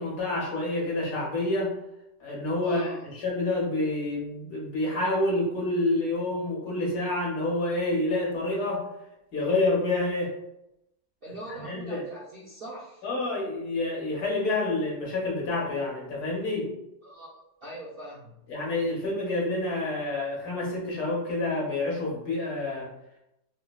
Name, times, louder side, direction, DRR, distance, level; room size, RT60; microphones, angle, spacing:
voice 1, 0.0-1.7 2.2-8.9 9.3-10.3 11.6-12.0 13.0-16.7 18.5-22.9, left 2 dB, 65° left, -4 dB, 1.5 m, -28 dB
voice 2, 2.6-3.0 11.2-13.0 17.0-18.3, right 1 dB, 55° right, -8 dB, 0.6 m, -42 dB
4.6 x 2.1 x 2.2 m, 0.86 s
omnidirectional pair, 1.8 m